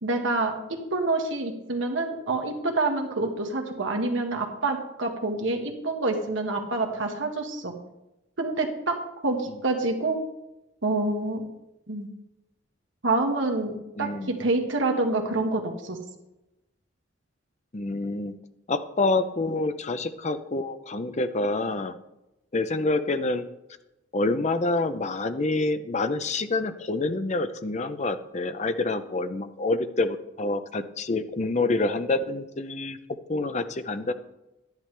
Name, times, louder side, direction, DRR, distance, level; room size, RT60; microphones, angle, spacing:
voice 1, 0.0-7.7 8.4-9.0 9.2-10.2 10.8-11.5 11.9-12.1 13.0-16.0, right 2 dB, 80° right, 3 dB, 1.6 m, -27 dB
voice 2, 14.0-14.4 17.7-18.3 18.7-21.9 22.5-23.4 24.1-33.0 33.3-34.1, left 2 dB, 35° left, 10 dB, 0.6 m, -27 dB
11.0 x 10.5 x 3.3 m, 0.93 s
head